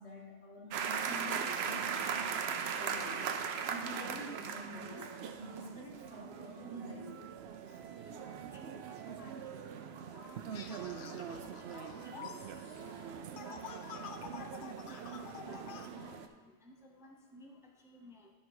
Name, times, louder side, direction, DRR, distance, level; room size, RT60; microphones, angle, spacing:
voice 1, 0.0-2.4 2.7-3.2 3.7-7.1 7.7-7.8 12.9-13.4 15.0-15.3, left 1 dB, 80° left, -1 dB, 1.7 m, -48 dB
sound 1, 0.7-16.3, right 7 dB, 70° right, 0.8 m, -40 dB
voice 2, 8.1-9.6 10.1-12.5 13.4-14.0 14.3-18.3, left 2 dB, 5° right, 1 dB, 0.6 m, -56 dB
sound 2, 10.5-15.9, left 7 dB, 60° left, 0.7 m, -49 dB
11.0 x 4.1 x 4.7 m, 1.2 s
omnidirectional pair, 1.1 m